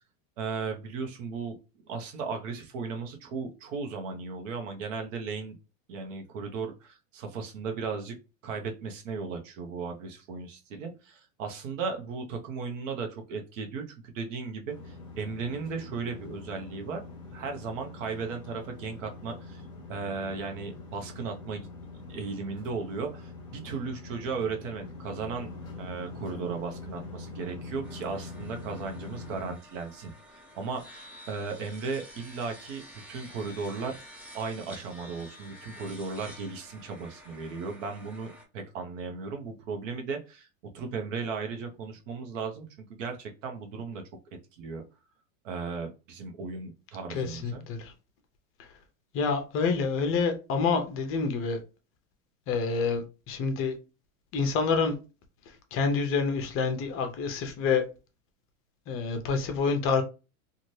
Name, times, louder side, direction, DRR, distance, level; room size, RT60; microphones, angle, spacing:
voice 1, 0.4-1.5 1.9-5.6 5.9-8.2 8.4-17.1 17.3-19.6 19.9-21.7 22.1-25.5 25.8-30.1 30.5-34.0 34.3-40.5 40.7-44.0 44.6-44.8 45.4-47.6, right 4 dB, 70° right, 0.9 m, -36 dB
sound 1, 14.7-29.6, left 3 dB, 10° left, 1.1 m, -44 dB
sound 2, 27.8-38.4, equal, 5° right, 0.3 m, -50 dB
voice 2, 47.1-47.9 48.6-48.7 49.1-51.6 52.5-53.7 54.3-54.9 55.5-57.8 58.9-60.0, left 5 dB, 35° left, 0.6 m, -27 dB
2.7 x 2.5 x 3.1 m
supercardioid pair, 140°, 40 cm